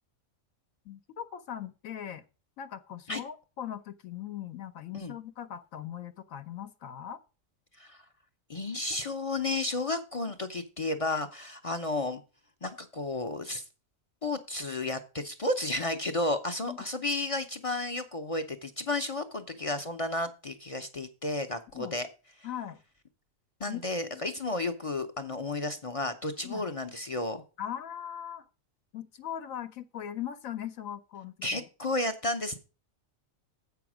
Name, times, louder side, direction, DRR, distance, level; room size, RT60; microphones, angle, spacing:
voice 1, 0.9-2.2 2.6-7.2 16.7-16.8 21.7-21.9 22.4-22.8 23.7-23.8 24.1-24.2 26.4-26.7 27.6-28.4 28.9-31.6, left 10 dB, 80° left, 8 dB, 1.1 m, -39 dB
voice 2, 8.5-12.2 12.6-13.6 14.2-22.1 23.6-27.4 31.4-32.6, left 2 dB, 40° left, 8 dB, 0.5 m, -32 dB
7.8 x 5.8 x 6.0 m, 0.33 s
omnidirectional pair, 1.4 m